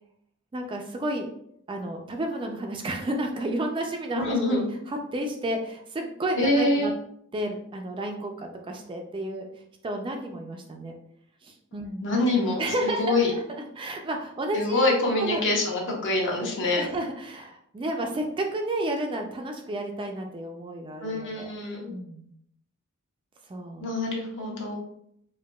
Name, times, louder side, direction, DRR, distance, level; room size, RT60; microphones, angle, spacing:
voice 1, 0.5-1.3 1.7-6.9 7.3-9.5 9.8-10.9 11.4-12.2 12.6-15.4 16.8-21.5 21.9-22.3 23.5-23.9, right 1 dB, 20° right, 3 dB, 0.3 m, -31 dB
voice 2, 4.1-4.7 6.4-6.9 12.0-13.3 14.5-16.8 21.0-22.0 23.8-24.8, left 2 dB, 55° left, -1 dB, 0.9 m, -25 dB
4.5 x 2.2 x 2.2 m, 0.72 s
head